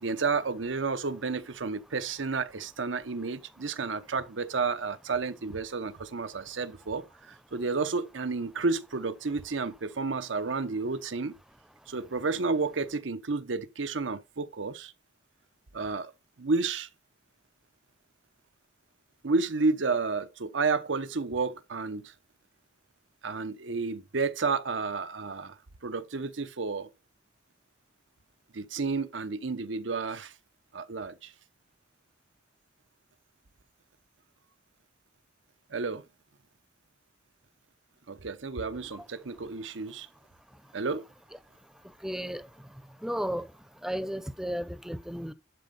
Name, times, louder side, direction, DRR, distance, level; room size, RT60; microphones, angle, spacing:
voice 1, 0.0-11.4 11.9-14.9 15.7-16.1 16.4-16.9 19.2-22.1 23.2-25.6 25.8-26.9 28.5-30.3 30.7-31.3 35.7-36.0 38.1-40.1 40.7-41.0, right 4 dB, 90° right, 0.9 m, -31 dB
voice 2, 42.0-42.4 43.0-43.5 43.8-45.3, equal, 5° right, 0.6 m, -33 dB
11.5 x 4.3 x 5.2 m
head